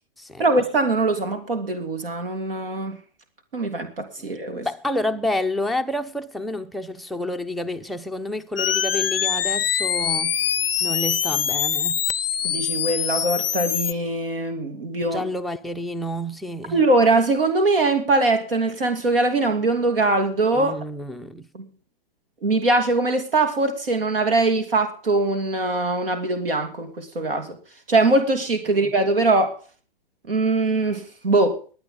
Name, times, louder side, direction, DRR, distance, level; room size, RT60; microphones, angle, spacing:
voice 1, 0.4-3.0 3.5-4.7 12.4-15.2 16.7-20.7 21.5-21.6 22.4-27.6 27.9-29.6 30.3-31.6, right 2 dB, 70° right, 2.9 m, -22 dB
voice 2, 4.5-10.4 10.8-12.1 15.0-16.8 20.5-21.5 28.7-28.9, left 1 dB, ahead, 0.5 m, -29 dB
sound 1, 8.6-13.9, left 9 dB, 75° left, 0.6 m, -24 dB
22.0 x 9.0 x 3.8 m
figure-of-eight pair, 120°, 29 cm